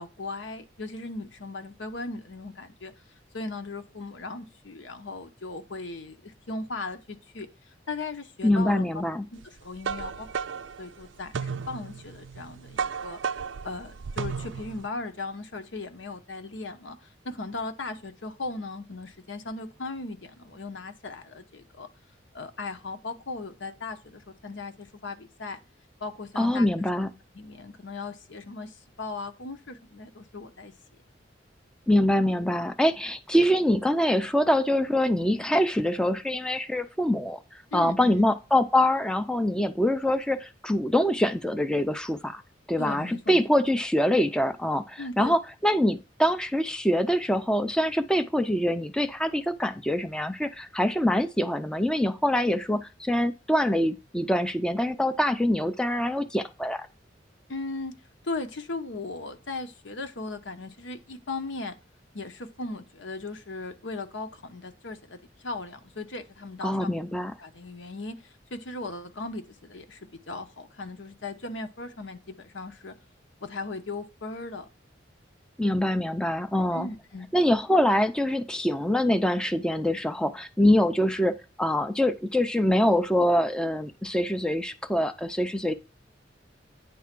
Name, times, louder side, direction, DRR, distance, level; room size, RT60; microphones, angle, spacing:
voice 1, 0.0-2.9 3.3-7.5 7.9-8.9 9.3-10.3 10.8-13.2 13.6-21.9 22.3-25.6 26.0-26.7 27.3-30.7 37.7-38.3 42.8-43.4 45.0-45.3 57.5-57.9 58.2-61.7 62.1-66.9 67.4-70.0 70.3-72.9 73.4-74.7 76.7-77.3, left 3 dB, 85° left, 1.0 m, -37 dB
voice 2, 8.4-9.2 26.4-27.1 31.9-37.4 37.7-42.4 42.7-56.9 66.6-67.3 75.6-76.9 77.3-85.7, left 1 dB, 5° left, 0.4 m, -24 dB
sound 1, 9.4-14.9, right 6 dB, 80° right, 0.4 m, -34 dB
9.3 x 3.5 x 5.9 m
head